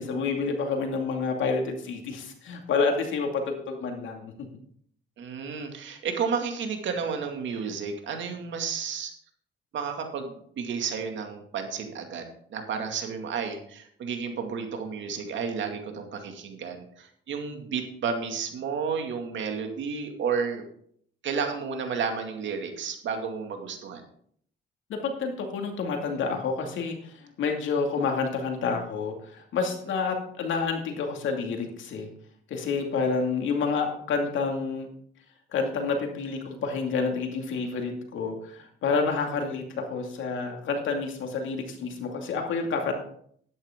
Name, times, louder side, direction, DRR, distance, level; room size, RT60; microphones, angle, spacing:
voice 1, 0.0-4.3 24.9-32.1 32.5-34.9 35.5-42.9, left 4 dB, 75° left, 3 dB, 2.4 m, -29 dB
voice 2, 5.2-9.1 9.7-20.6 21.2-24.0, right 6 dB, 70° right, 4 dB, 2.3 m, -32 dB
11.5 x 10.5 x 3.8 m, 0.63 s
cardioid pair, 90°, 20 cm